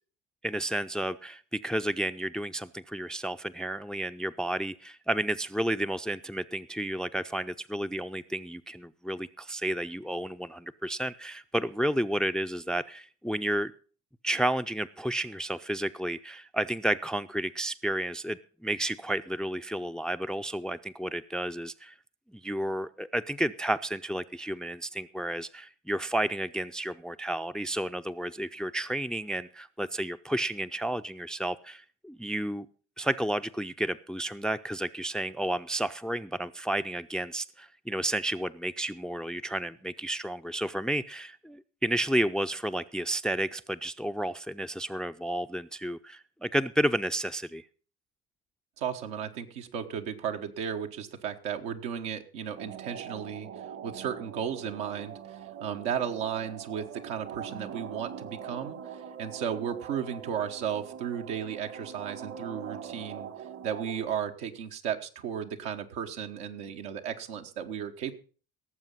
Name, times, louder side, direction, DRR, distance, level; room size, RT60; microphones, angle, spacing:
voice 1, 0.4-13.7 14.2-21.9 22.3-32.7 33.0-47.7, right 1 dB, ahead, 11 dB, 0.5 m, -31 dB
voice 2, 48.8-63.3 63.6-68.2, right 8 dB, 70° right, 4 dB, 1.4 m, -35 dB
sound 1, 52.6-64.1, right 7 dB, 50° right, 1.8 m, -43 dB
17.5 x 7.4 x 5.5 m, 0.40 s
hypercardioid pair, 65°, 34 cm